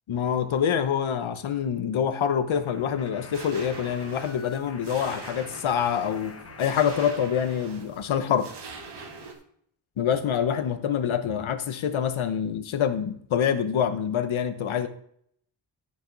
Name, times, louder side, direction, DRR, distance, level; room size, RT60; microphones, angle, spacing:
voice 1, 0.1-8.5 10.0-14.9, left 8 dB, 75° left, 10 dB, 1.0 m, -26 dB
sound 1, 2.5-7.2 7.4-9.4, left 3 dB, 30° left, 1.0 m, -47 dB
sound 2, 3.3-9.3, right 3 dB, 55° right, 1.7 m, -43 dB
14.5 x 5.3 x 4.0 m, 0.66 s
wide cardioid pair, 155°, 49 cm